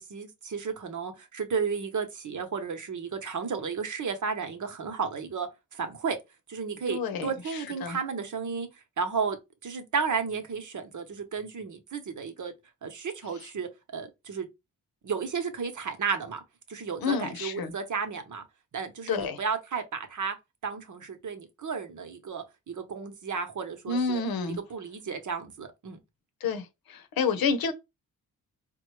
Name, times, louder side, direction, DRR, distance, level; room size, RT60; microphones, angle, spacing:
voice 1, 0.0-6.2 6.5-8.7 9.0-9.4 9.6-12.5 12.8-14.5 15.0-16.4 16.7-18.4 18.7-20.3 20.6-24.2 24.7-26.0, right 5 dB, 55° right, 0.9 m, -33 dB
voice 2, 6.9-7.3 7.8-8.0 17.0-17.7 19.1-19.4 23.9-24.6 26.4-27.7, left 5 dB, 75° left, 0.8 m, -29 dB
4.0 x 2.3 x 3.1 m
cardioid pair, 55°, 36 cm